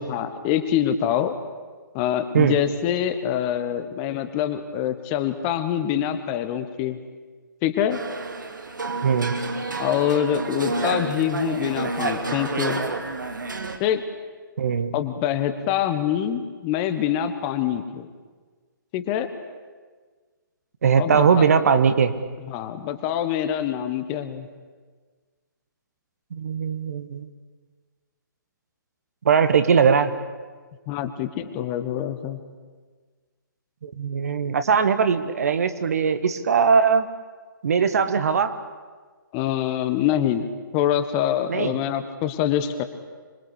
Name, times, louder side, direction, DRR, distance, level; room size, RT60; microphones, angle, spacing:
voice 1, 0.1-1.4 1.9-7.0 7.6-8.0 9.8-12.8 13.8-14.0 14.9-18.1 18.9-19.3 21.0-21.5 22.5-24.5 30.9-32.4 39.3-40.5 40.7-42.8, left 10 dB, 20° left, 9 dB, 1.3 m, -25 dB
sound 1, 7.9-13.8, right 3 dB, 65° right, 2.7 m, -29 dB
voice 2, 9.0-9.3 14.6-14.9 20.8-22.1 26.3-27.3 29.2-30.1 33.8-37.1 37.6-38.6 41.5-41.7, right 6 dB, 45° right, 10 dB, 1.5 m, -20 dB
26.0 x 22.0 x 8.5 m, 1.5 s
figure-of-eight pair, 135°, 11 cm